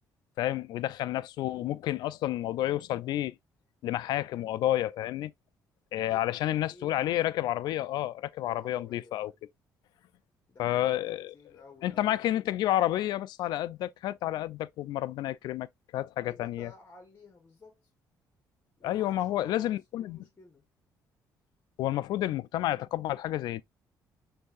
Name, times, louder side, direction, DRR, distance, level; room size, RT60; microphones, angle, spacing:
voice 1, 0.4-3.4 3.8-5.3 5.9-9.3 10.6-11.3 11.8-15.7 15.9-16.7 18.8-20.2 21.8-23.6, left 14 dB, 75° left, 0.3 m, -30 dB
voice 2, 6.1-6.4 6.7-7.3 8.5-9.4 10.5-12.5 16.3-17.9 18.8-20.6, left 3 dB, 30° left, 1.1 m, -54 dB
6.3 x 2.7 x 2.4 m
cardioid pair, 90°, 7 cm